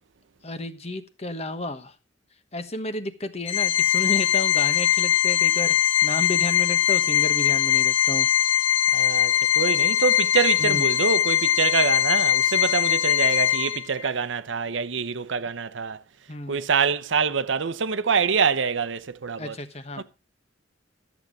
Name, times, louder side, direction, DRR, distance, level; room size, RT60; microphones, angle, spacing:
voice 1, 0.4-1.9 2.5-8.3 10.6-10.9 16.3-16.6 19.4-20.0, left 1 dB, 35° left, 1.2 m, -32 dB
Organ, 3.5-14.1, left 11 dB, 90° left, 1.5 m, -21 dB
voice 2, 8.9-16.0 16.5-19.6 20.0-20.1, right 6 dB, 85° right, 0.7 m, -25 dB
13.0 x 7.3 x 6.3 m
head